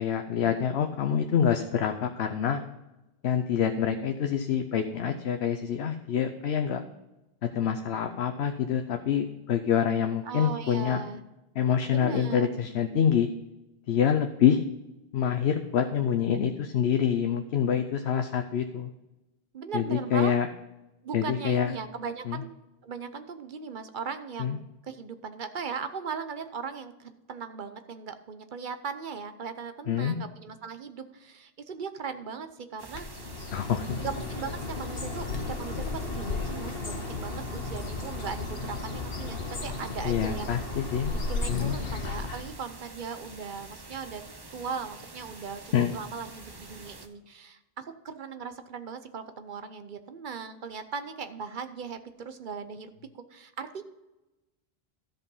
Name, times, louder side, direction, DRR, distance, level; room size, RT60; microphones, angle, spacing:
voice 1, 0.0-2.6 3.2-6.8 7.4-11.0 11.6-13.3 13.9-14.6 15.1-18.9 19.7-20.5 21.1-21.7 22.3-22.4 24.4-24.6 29.9-30.2 33.5-34.0 40.0-41.1 41.5-41.8 45.7-46.0, left 8 dB, 85° left, 6 dB, 1.0 m, -26 dB
voice 2, 9.7-11.2 11.9-12.6 19.5-20.4 21.0-22.6 22.8-33.1 34.0-40.5 41.1-44.2 44.5-45.6 45.9-53.8, right 5 dB, 55° right, 9 dB, 0.9 m, -38 dB
sound 1, 32.8-47.1, right 3 dB, 25° right, 0.8 m, -47 dB
Bird, 32.9-42.6, left 3 dB, 65° left, 1.4 m, -34 dB
13.5 x 5.3 x 5.5 m, 1.0 s
omnidirectional pair, 1.0 m